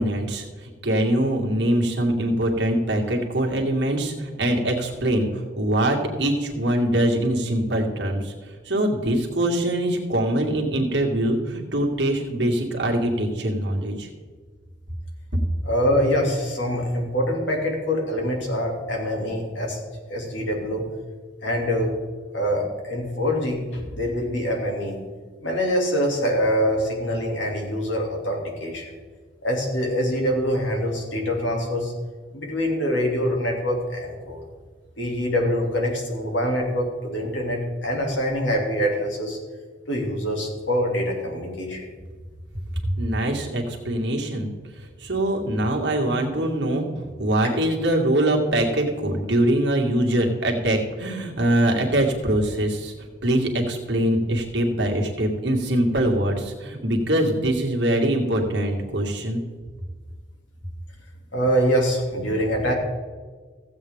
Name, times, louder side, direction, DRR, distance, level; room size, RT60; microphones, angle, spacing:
voice 1, 0.0-14.1 43.0-44.5 45.0-46.9 47.2-52.9 53.2-59.4, right 1 dB, 65° right, 0 dB, 2.0 m, -23 dB
voice 2, 15.6-19.8 20.1-20.8 21.4-22.0 22.3-25.0 25.4-28.9 29.4-31.9 32.3-34.4 35.0-39.4 39.9-41.8 61.3-62.7, equal, 85° left, 0 dB, 2.7 m, -24 dB
15.0 x 8.2 x 3.6 m, 1.4 s
head